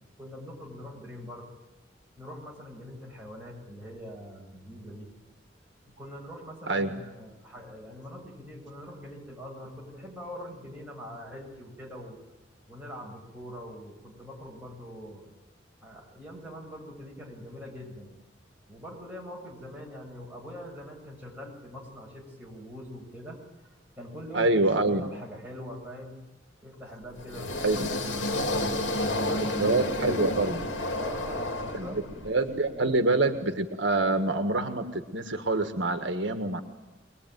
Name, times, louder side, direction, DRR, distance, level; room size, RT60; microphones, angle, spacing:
voice 1, 0.2-1.5 2.2-5.1 6.0-12.2 12.7-15.3 15.8-18.1 18.7-23.4 23.6-26.2 26.6-29.7 31.0-33.3, equal, 10° right, -2 dB, 7.1 m, -43 dB
voice 2, 24.3-25.0 27.6-27.9 29.6-30.7 31.7-36.6, right 2 dB, 70° right, 7 dB, 1.6 m, -26 dB
sound 1, 27.2-32.3, left 1 dB, 75° left, 2.6 m, -30 dB
24.5 x 20.5 x 9.3 m, 1.0 s
head